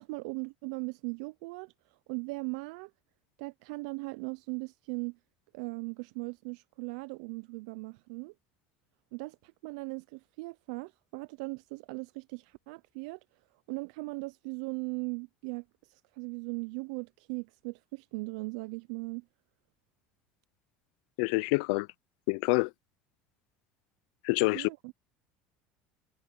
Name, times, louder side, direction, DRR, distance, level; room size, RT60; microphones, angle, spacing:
voice 1, 0.0-2.9 3.4-5.2 5.5-8.3 9.1-13.2 13.7-19.2 24.5-24.9, right 28 dB, 85° right, 0.4 m, -39 dB
voice 2, 21.2-21.9 22.3-22.7 24.2-24.7, left 28 dB, 80° left, 0.4 m, -27 dB
cardioid pair, 155°, 4 cm